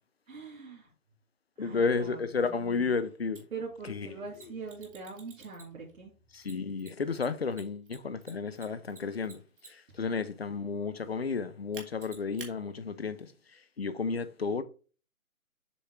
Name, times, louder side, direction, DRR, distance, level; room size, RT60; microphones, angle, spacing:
voice 1, 0.3-0.9 1.6-2.9 3.5-6.1, right 4 dB, 65° right, 2.4 m, -43 dB
voice 2, 1.6-3.4 3.9-4.1 6.3-14.6, left 4 dB, 45° left, 0.7 m, -32 dB
Mechanisms, 3.3-3.4 4.3-5.9 6.4-10.0 11.7-12.5, right 4 dB, 40° right, 1.5 m, -49 dB
7.0 x 3.6 x 4.5 m
hypercardioid pair, 175°, 43 cm